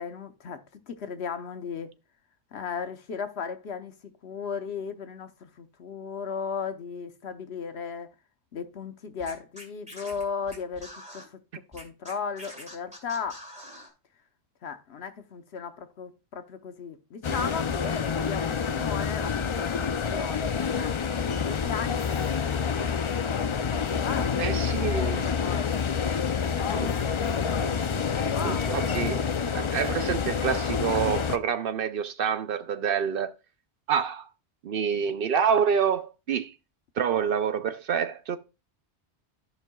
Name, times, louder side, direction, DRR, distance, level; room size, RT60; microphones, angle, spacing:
voice 1, 0.0-1.9 2.5-8.1 8.5-11.4 11.7-13.5 14.6-22.3 23.2-24.6 25.0-25.9 26.2-27.0 27.9-29.1, left 6 dB, 70° left, 1.1 m, -36 dB
Scratching (performance technique), 9.2-11.2 11.7-13.9, equal, 5° right, 2.3 m, -45 dB
sound 1, 17.2-31.4, left 6 dB, 50° left, 0.3 m, -28 dB
voice 2, 24.4-25.2 26.7-26.9 28.4-29.2 29.5-33.3 33.9-34.3 34.6-36.5 37.0-38.4, right 7 dB, 60° right, 0.7 m, -27 dB
14.5 x 5.4 x 2.3 m
omnidirectional pair, 1.1 m